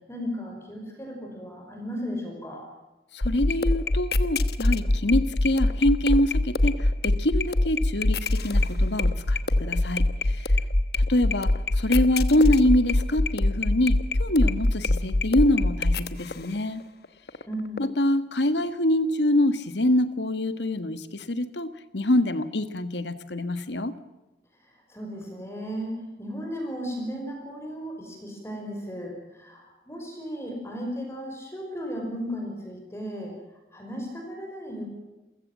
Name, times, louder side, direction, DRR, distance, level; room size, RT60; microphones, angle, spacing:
voice 1, 0.1-2.7 4.9-5.0 17.5-17.9 24.9-33.3 33.7-34.9, equal, 15° left, 2 dB, 5.3 m, -35 dB
voice 2, 3.1-10.5 11.0-16.8 17.8-23.9, left 1 dB, 80° left, 12 dB, 1.6 m, -25 dB
sound 1, 3.2-16.6 17.0-17.4 17.8-17.9, left 2 dB, 65° left, 1.1 m, -24 dB
28.5 x 15.5 x 7.5 m, 1.1 s
head